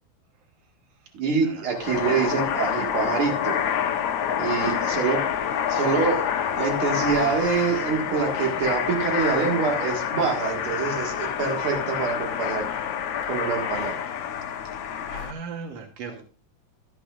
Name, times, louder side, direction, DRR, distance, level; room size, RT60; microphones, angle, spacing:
voice 1, 1.1-3.5 4.4-5.2 5.7-6.2 6.6-12.6 13.3-13.9, right 5 dB, 45° right, 1 dB, 1.9 m, -25 dB
sound 1, 1.7-15.3, left 8 dB, 80° left, 1.7 m, -27 dB
voice 2, 15.1-16.2, right 5 dB, 85° right, 4 dB, 1.4 m, -37 dB
12.0 x 12.0 x 2.5 m, 0.37 s
omnidirectional pair, 4.7 m